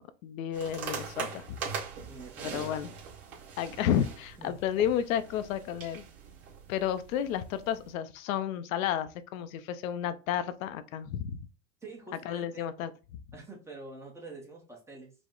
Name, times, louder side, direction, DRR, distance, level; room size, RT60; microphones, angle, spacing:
voice 1, 0.0-1.6 2.4-2.9 3.6-6.0 6.7-11.4 12.2-12.9, left 10 dB, 85° left, 0.6 m, -31 dB
sound 1, 0.5-7.9, right 6 dB, 35° right, 1.8 m, -42 dB
voice 2, 2.1-2.7 4.4-4.6 11.8-12.7 13.3-15.1, right 3 dB, 5° right, 0.7 m, -46 dB
5.0 x 2.0 x 3.7 m
supercardioid pair, 150°, 40 cm